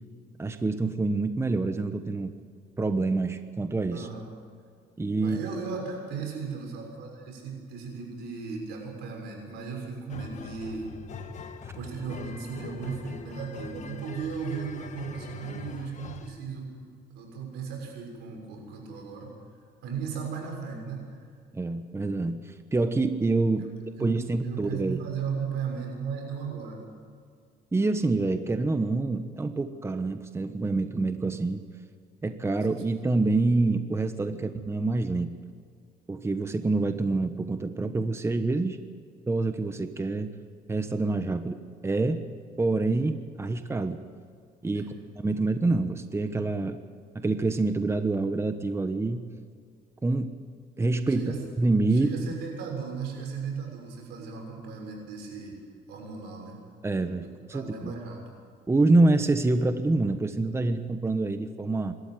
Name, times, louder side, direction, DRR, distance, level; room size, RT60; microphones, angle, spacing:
voice 1, 0.4-2.3 2.8-4.1 5.0-5.4 21.5-23.7 24.0-25.0 27.7-31.6 32.2-35.3 36.1-38.8 39.3-40.3 40.7-42.2 42.6-44.0 44.6-46.8 47.1-49.3 50.0-50.3 50.8-52.1 56.8-57.9 58.7-61.9, right 3 dB, 15° right, 9 dB, 1.1 m, -26 dB
voice 2, 3.9-4.2 5.2-10.9 11.7-16.7 17.1-19.3 19.8-21.1 23.6-23.7 24.0-24.1 24.4-26.8 44.7-45.0 51.1-51.4 51.9-55.6 55.9-56.6 57.5-58.4, right 5 dB, 90° right, 1 dB, 6.7 m, -36 dB
sound 1, 10.1-16.4, left 5 dB, 45° left, 1.6 m, -42 dB
25.0 x 13.0 x 9.2 m, 2.1 s
cardioid pair, 110°, 17 cm